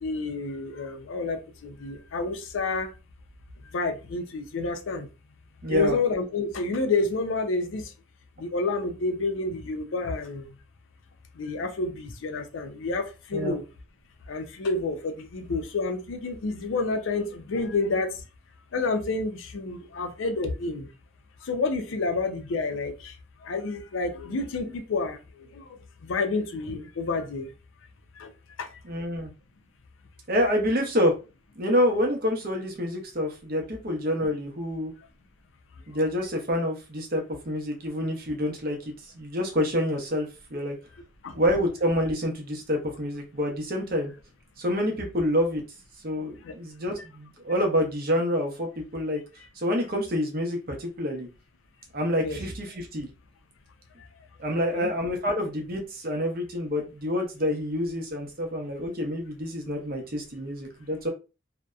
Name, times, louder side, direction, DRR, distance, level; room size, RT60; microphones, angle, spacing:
voice 1, 0.0-2.9 3.7-5.1 5.7-7.9 8.4-10.5 11.4-13.6 14.3-18.1 18.7-20.9 21.4-23.1 23.4-25.6 26.0-27.5 28.2-28.3 28.6-28.7 41.2-41.3 46.4-46.5 52.2-52.4 54.6-54.9, left 3 dB, 85° left, 0.5 m, -29 dB
voice 2, 5.6-6.0 13.3-13.5 28.8-29.3 30.3-31.1 31.6-34.9 35.9-40.8 41.3-44.1 44.6-45.6 46.0-49.2 49.6-51.3 51.9-53.1 54.4-61.1, equal, 50° right, 0.6 m, -27 dB
2.6 x 2.1 x 2.3 m
head